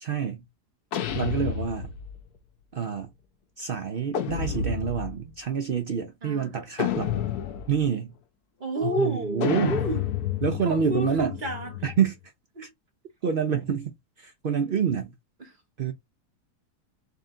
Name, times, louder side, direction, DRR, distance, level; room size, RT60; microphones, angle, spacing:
voice 1, 0.0-0.4 1.1-1.9 2.7-3.1 3.6-7.2 7.7-8.2 8.8-9.8 10.4-11.3 11.8-12.1 12.6-12.7 13.2-13.9 14.2-15.1 15.8-15.9, right 7 dB, 75° right, 0.5 m, -27 dB
sound 1, 0.9-2.2 4.1-5.2 6.8-7.8 9.4-12.1, left 9 dB, 80° left, 1.1 m, -30 dB
voice 2, 6.2-6.5 8.6-10.0 10.7-11.8 12.6-12.7 15.4-15.5, equal, 35° right, 1.1 m, -30 dB
3.8 x 2.5 x 3.7 m
omnidirectional pair, 1.7 m